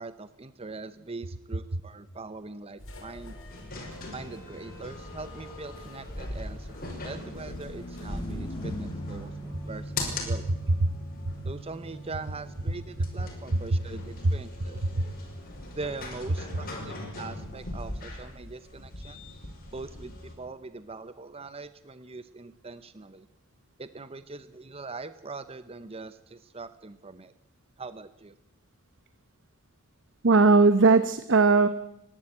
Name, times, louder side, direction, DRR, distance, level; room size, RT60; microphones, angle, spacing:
voice 1, 0.0-3.4 4.1-10.5 11.4-14.8 15.7-19.2 19.7-23.3 23.8-27.3 27.8-28.3, right 3 dB, 25° right, 12 dB, 0.7 m, -42 dB
sound 1, 2.8-9.3, left 1 dB, 60° left, 5.0 m, -50 dB
sound 2, 3.1-20.3, left 2 dB, 40° left, 5.8 m, -40 dB
Car passing by / Truck, 4.2-17.8, right 1 dB, 20° left, 5.2 m, -44 dB
voice 2, 30.2-31.7, right 3 dB, 55° right, 12 dB, 0.9 m, -19 dB
30.0 x 12.0 x 8.7 m, 0.88 s
head